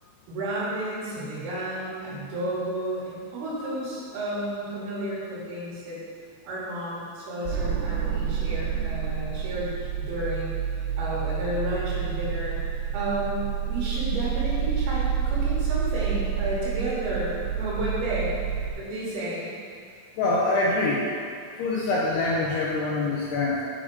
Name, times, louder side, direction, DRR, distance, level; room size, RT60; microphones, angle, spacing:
voice 1, 0.3-6.0 6.4-18.4 18.8-19.5, right 1 dB, 65° right, -8 dB, 3.0 m, -32 dB
sound 1, 7.4-18.7, right 8 dB, 85° right, 2.5 m, -28 dB
voice 2, 20.2-21.1 21.6-23.6, left 2 dB, 80° left, -5 dB, 2.4 m, -25 dB
8.1 x 4.1 x 4.6 m, 2.2 s
omnidirectional pair, 5.4 m